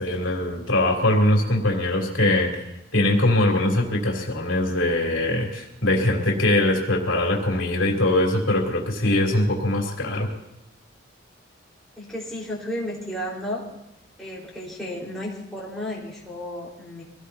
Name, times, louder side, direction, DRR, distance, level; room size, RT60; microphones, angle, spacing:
voice 1, 0.0-2.6 2.9-10.3, left 1 dB, 70° left, -1 dB, 3.4 m, -22 dB
voice 2, 12.0-13.6 14.2-17.0, left 1 dB, ahead, -6 dB, 4.5 m, -33 dB
25.0 x 18.0 x 2.8 m, 0.85 s
head